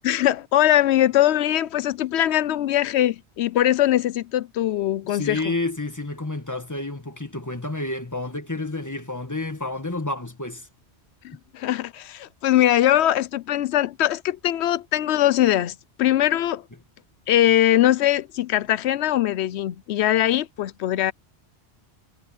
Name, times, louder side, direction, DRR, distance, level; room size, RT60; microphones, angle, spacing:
voice 1, 0.0-5.5 11.2-16.6 17.3-21.1, left 12 dB, 85° left, 0.9 m, -21 dB
voice 2, 5.1-10.7, left 2 dB, 15° left, 1.6 m, -30 dB
omnidirectional pair, 1.1 m